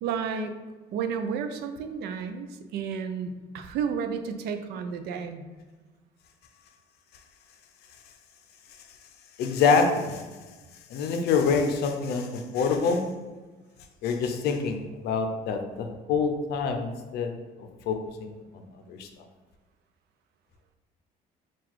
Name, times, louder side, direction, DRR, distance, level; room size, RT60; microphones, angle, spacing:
voice 1, 0.0-0.6 0.9-5.4, right 6 dB, 75° right, 7 dB, 0.4 m, -32 dB
voice 2, 9.4-10.2 10.9-13.1 14.0-17.3 17.9-19.1, left 5 dB, 75° left, 5 dB, 0.5 m, -26 dB
3.8 x 2.4 x 4.5 m, 1.3 s
cardioid pair, 110°, 17 cm